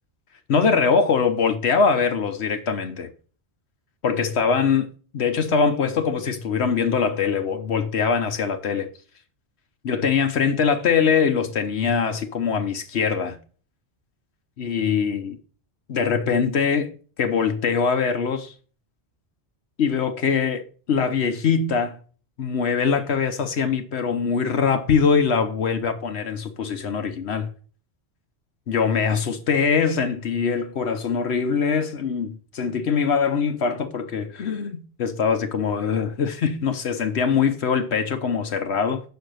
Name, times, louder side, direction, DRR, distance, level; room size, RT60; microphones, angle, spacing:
voice 1, 0.5-3.1 4.0-4.9 5.1-8.9 9.8-13.4 14.6-15.4 15.9-16.9 17.2-18.5 19.8-22.0 22.4-27.5 28.7-39.0, left 6 dB, 70° left, 1.1 m, -22 dB
6.1 x 4.6 x 6.3 m
omnidirectional pair, 1.2 m